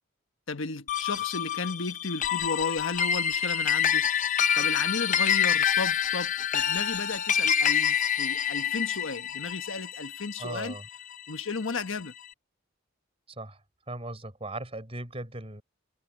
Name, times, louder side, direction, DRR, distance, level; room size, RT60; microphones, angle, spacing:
voice 1, 0.5-4.1 4.5-10.7 11.3-12.1, left 4 dB, 75° left, 1.2 m, -34 dB
sound 1, 0.9-11.5, left 8 dB, 40° left, 0.7 m, -27 dB
voice 2, 10.4-10.9 13.3-13.6 13.9-15.6, right 2 dB, 30° right, 4.5 m, -38 dB
head